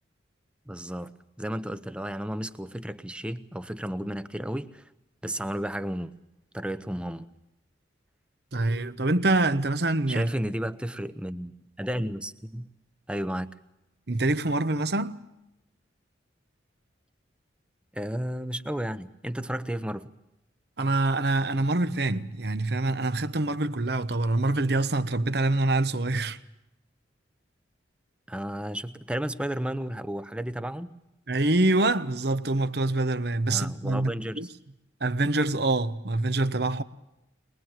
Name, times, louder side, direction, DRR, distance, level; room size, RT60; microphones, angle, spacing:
voice 1, 0.7-4.8 5.2-6.1 6.5-7.3 10.1-12.7 13.1-13.5 17.9-20.1 28.3-31.0 33.5-34.5, equal, 5° right, 0.8 m, -33 dB
voice 2, 8.5-10.3 14.1-15.2 20.8-26.4 31.3-34.5 35.0-36.8, right 2 dB, 55° right, 1.0 m, -25 dB
22.5 x 22.0 x 7.5 m
head